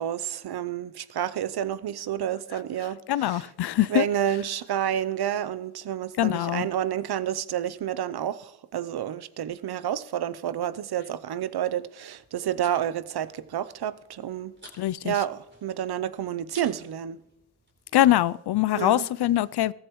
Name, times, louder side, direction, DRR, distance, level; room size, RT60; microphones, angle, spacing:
voice 1, 0.0-3.5 3.9-14.5 15.0-17.2 18.7-19.1, right 10 dB, 60° right, 0.7 m, -30 dB
voice 2, 3.1-4.1 6.2-6.7 14.8-15.1 17.9-19.7, left 13 dB, 65° left, 0.5 m, -23 dB
sound 1, 12.1-17.9, right 1 dB, 25° right, 3.8 m, -53 dB
16.0 x 14.5 x 3.1 m
cardioid pair, 70°, 43 cm